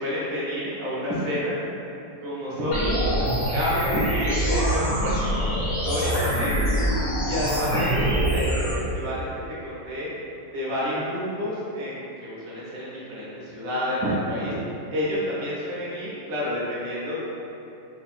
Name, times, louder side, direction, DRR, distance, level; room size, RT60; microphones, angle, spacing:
voice 1, 0.0-1.6 2.2-6.9 7.2-9.3 9.6-10.1 10.5-14.5 14.9-17.2, left 1 dB, 60° right, -8 dB, 1.0 m, -29 dB
sound 1, 2.7-8.7, right 1 dB, 50° left, 1.0 m, -24 dB
3.6 x 2.4 x 2.4 m, 2.9 s
omnidirectional pair, 2.0 m